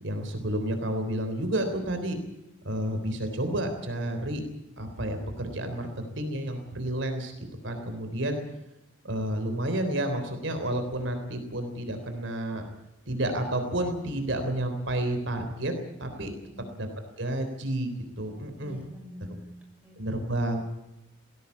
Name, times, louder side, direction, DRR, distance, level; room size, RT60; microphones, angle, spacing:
voice 1, 0.0-2.2 2.6-4.4 4.8-5.9 6.2-7.3 7.6-8.4 9.0-12.6 13.1-15.7 16.0-16.3 16.8-16.9 17.2-18.8 20.0-20.6, right 1 dB, 65° right, 6 dB, 3.6 m, -30 dB
voice 2, 16.5-16.8 18.6-20.0, left 1 dB, 10° right, 0 dB, 6.3 m, -47 dB
19.5 x 17.0 x 8.4 m, 0.91 s
head